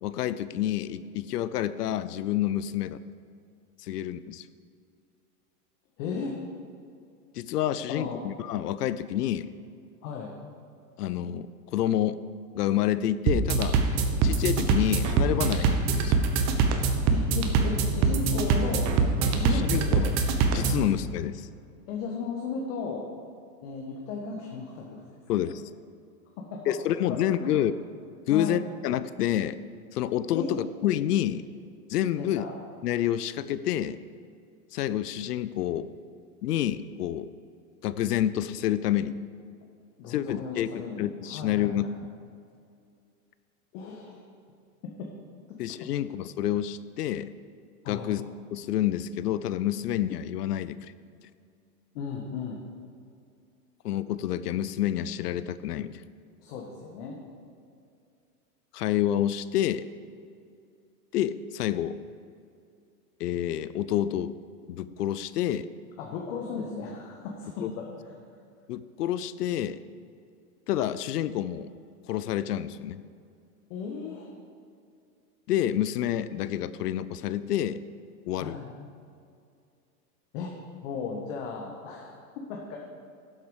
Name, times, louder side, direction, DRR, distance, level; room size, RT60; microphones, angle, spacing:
voice 1, 0.0-3.0 3.8-4.5 7.3-9.5 11.0-12.2 12.5-13.8 14.2-16.2 19.5-20.1 20.5-21.5 25.3-25.6 26.7-27.7 28.3-29.6 29.9-31.4 31.9-32.4 32.8-34.0 34.7-35.9 36.4-37.3 37.8-39.1 40.1-41.9 45.6-47.3 47.9-48.2 48.5-50.8 53.8-56.0 58.7-59.9 61.1-62.0 63.2-64.4 64.7-65.7 67.6-67.7 68.7-69.8 70.7-71.7 72.1-73.0 75.5-77.8 78.3-78.6, left 11 dB, 80° left, 15 dB, 0.6 m, -28 dB
voice 2, 6.0-6.4 7.9-8.2 10.0-10.3 17.1-18.9 19.3-20.2 20.4-20.7 21.9-23.1 23.6-25.0 26.4-26.7 27.1-27.5 28.3-28.6 30.3-30.6 32.2-32.5 40.0-41.9 43.7-44.2 44.8-45.1 45.5-45.9 47.8-48.1 51.9-52.6 56.4-57.2 66.0-68.2 73.7-74.3 78.3-78.8 80.3-80.5 80.8-82.8, left 5 dB, 50° left, 0 dB, 1.6 m, -35 dB
sound 1, 13.3-20.9, right 4 dB, 35° right, 1.1 m, -24 dB
12.0 x 7.5 x 4.9 m, 2.4 s
hypercardioid pair, 120°, 47 cm